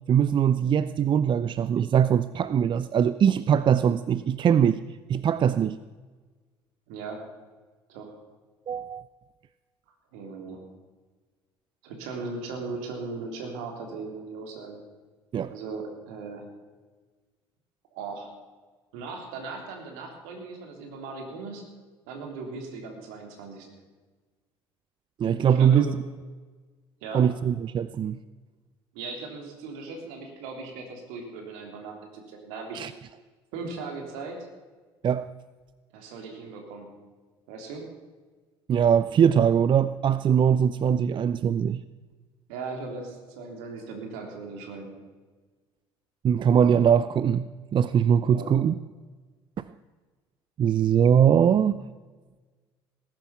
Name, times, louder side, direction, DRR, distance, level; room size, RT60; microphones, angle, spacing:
voice 1, 0.0-4.8 5.1-5.8 8.7-9.1 15.3-15.5 25.2-25.9 27.1-28.2 32.7-32.9 35.0-35.3 38.7-41.8 46.2-48.7 49.6-49.7 50.6-51.8, right 8 dB, 40° right, 15 dB, 0.5 m, -22 dB
voice 2, 6.9-7.2 7.9-8.2 10.1-10.6 11.8-14.8 15.5-16.5 17.9-18.3 18.9-21.7 22.1-23.7 25.5-25.9 27.0-27.2 28.9-32.8 33.5-34.4 35.9-37.0 37.5-37.9 42.5-45.0 48.2-48.5, right 4 dB, 70° right, 3 dB, 3.3 m, -38 dB
18.5 x 11.0 x 5.9 m, 1.4 s
hypercardioid pair, 60°, 13 cm